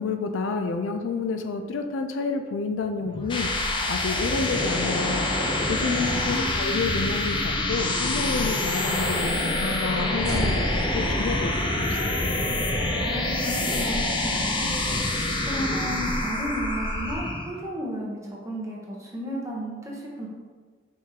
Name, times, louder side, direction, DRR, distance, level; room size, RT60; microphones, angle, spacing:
voice 1, 0.0-5.3 5.7-11.5 11.8-12.2, left 4 dB, 80° left, 7 dB, 0.4 m, -30 dB
sound 1, 3.0-17.6, left 1 dB, 25° left, 0.5 m, -26 dB
voice 2, 5.8-6.4 13.0-15.0 15.5-20.3, left 1 dB, 15° right, -3 dB, 0.8 m, -33 dB
sound 2, 10.2-16.5, right 1 dB, 45° right, 1.3 m, -35 dB
4.6 x 3.7 x 2.8 m, 1.5 s
head